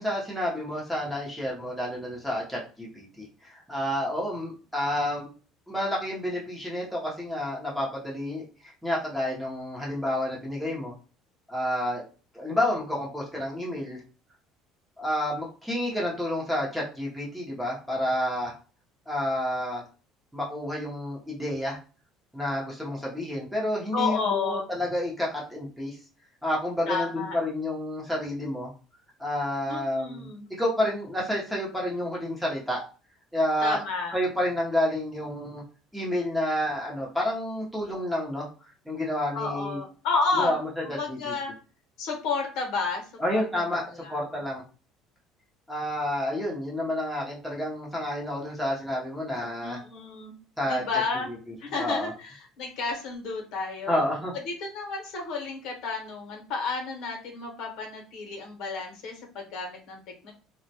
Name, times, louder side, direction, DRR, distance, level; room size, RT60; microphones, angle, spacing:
voice 1, 0.0-5.3 5.7-10.9 11.5-12.0 12.3-14.0 15.0-18.5 19.1-19.8 20.3-21.8 22.3-26.0 26.4-28.7 29.2-30.3 30.6-32.8 33.3-33.8 34.1-35.6 35.9-39.8 40.3-41.3 43.2-44.6 45.7-49.8 50.6-52.1 53.9-54.3, left 1 dB, ahead, -4 dB, 0.7 m, -30 dB
voice 2, 23.9-24.7 26.9-27.4 29.7-30.5 33.6-34.2 39.3-41.5 42.0-43.0 43.3-43.7 43.9-44.2 49.6-50.3 50.7-51.3 51.6-54.0 54.5-60.3, left 4 dB, 65° left, 2 dB, 0.8 m, -31 dB
2.2 x 2.1 x 2.7 m, 0.36 s
cardioid pair, 140°, 0 cm